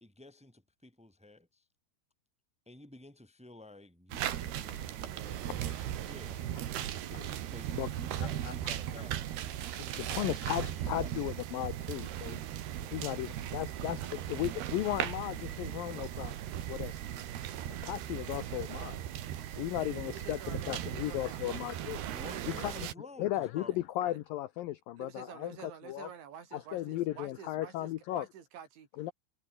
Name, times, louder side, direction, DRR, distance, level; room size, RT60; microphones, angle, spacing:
voice 1, 0.0-1.6 2.7-6.4 7.5-9.5 9.9-11.1 22.1-23.8, left 2 dB, ahead, 1.8 m, -52 dB
sound 1, 4.1-22.9, right 11 dB, 65° right, 3.6 m, -38 dB
voice 2, 5.5-5.9 7.1-7.3 7.8-7.9 8.4-8.5 9.8-12.4 12.8-16.4 16.7-16.9 17.8-19.0 19.5-22.0 22.5-22.9 23.2-26.1 26.5-28.3 29.0-29.1, left 14 dB, 90° left, 2.0 m, -36 dB
voice 3, 19.8-21.4 22.0-22.9 23.7-23.8 24.1-24.2 25.0-28.9, right 8 dB, 80° right, 5.8 m, -49 dB
omnidirectional pair, 5.2 m